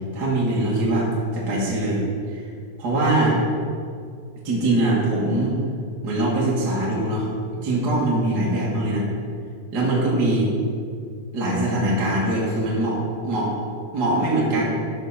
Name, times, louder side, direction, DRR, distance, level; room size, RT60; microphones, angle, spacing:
voice 1, 0.1-2.0 2.3-2.4 2.8-3.4 4.4-5.5 6.0-7.3 7.6-9.1 9.7-10.5 11.3-13.5 13.9-14.6, right 1 dB, 40° right, -5 dB, 1.5 m, -22 dB
14.0 x 5.7 x 4.2 m, 2.2 s
omnidirectional pair, 4.8 m